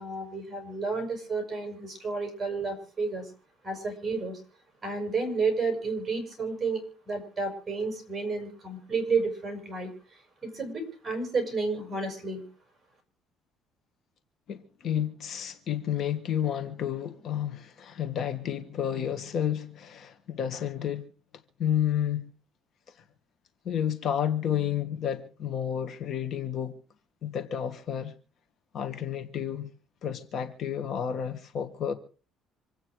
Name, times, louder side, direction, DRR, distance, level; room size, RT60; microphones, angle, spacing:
voice 1, 0.0-3.3 3.6-4.4 4.8-9.9 10.4-12.4, right 4 dB, 20° right, 6.2 m, -31 dB
voice 2, 14.5-21.1 21.6-22.2 23.6-26.7 27.2-28.1 28.7-29.7 30.0-31.9, left 9 dB, 50° left, 1.6 m, -31 dB
26.5 x 8.9 x 4.7 m
cardioid pair, 145°, 0 cm